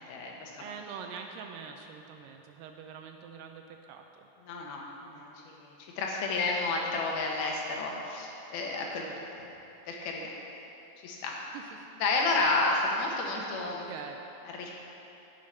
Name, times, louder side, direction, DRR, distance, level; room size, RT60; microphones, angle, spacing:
voice 1, 0.0-0.7 4.4-9.3 9.9-10.3 11.0-11.3 12.0-13.9 14.6-14.7, left 3 dB, 85° left, -1 dB, 3.0 m, -31 dB
voice 2, 0.6-4.3 5.1-5.3 9.0-9.3 11.5-11.7 13.3-14.2, right 6 dB, 80° right, 4 dB, 2.1 m, -45 dB
9.5 x 6.4 x 5.5 m, 3.0 s
omnidirectional pair, 4.2 m